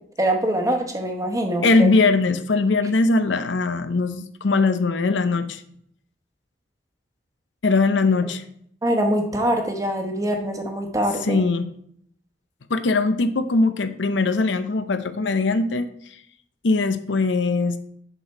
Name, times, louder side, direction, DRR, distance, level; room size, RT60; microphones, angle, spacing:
voice 1, 0.2-1.9 8.8-11.4, right 1 dB, 20° right, 4 dB, 1.1 m, -23 dB
voice 2, 1.6-5.6 7.6-8.4 11.2-11.7 12.7-15.9 16.6-17.8, left 3 dB, 90° left, 10 dB, 0.7 m, -21 dB
6.8 x 5.9 x 4.5 m, 0.66 s
head